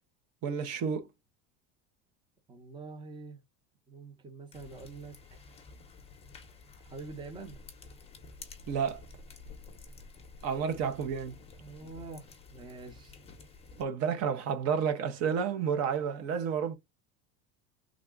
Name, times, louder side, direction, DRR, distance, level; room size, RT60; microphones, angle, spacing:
voice 1, 0.4-1.1 8.7-9.0 10.4-11.3 13.8-16.8, right 7 dB, 45° right, 0.8 m, -30 dB
voice 2, 2.5-3.4 3.9-5.4 6.8-7.6 10.5-10.8 11.6-13.2, right 3 dB, 15° right, 0.7 m, -46 dB
sound 1, 4.5-13.8, left 4 dB, 15° left, 0.8 m, -51 dB
3.6 x 2.2 x 3.7 m
cardioid pair, 155°, 35 cm